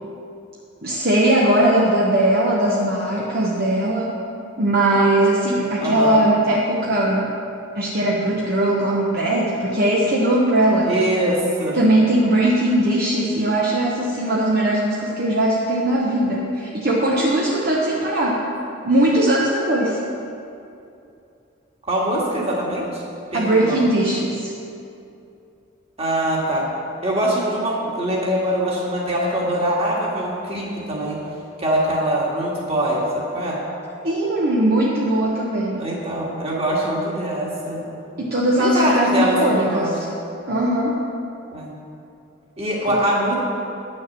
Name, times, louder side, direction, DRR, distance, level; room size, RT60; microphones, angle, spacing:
voice 1, 0.8-4.1 4.6-7.3 7.7-11.0 11.7-18.4 18.8-20.0 23.3-24.5 34.0-35.8 38.2-40.0 40.5-41.1 42.9-43.0, right 1 dB, 45° right, -4 dB, 1.0 m, -19 dB
voice 2, 5.8-6.2 10.8-11.8 21.8-23.0 23.3-23.8 26.0-26.7 27.0-31.2 31.6-33.6 35.8-37.8 38.6-39.9 41.5-41.8 42.6-43.3, right 1 dB, 30° right, -4 dB, 2.0 m, -23 dB
10.5 x 6.4 x 7.4 m, 2.6 s
head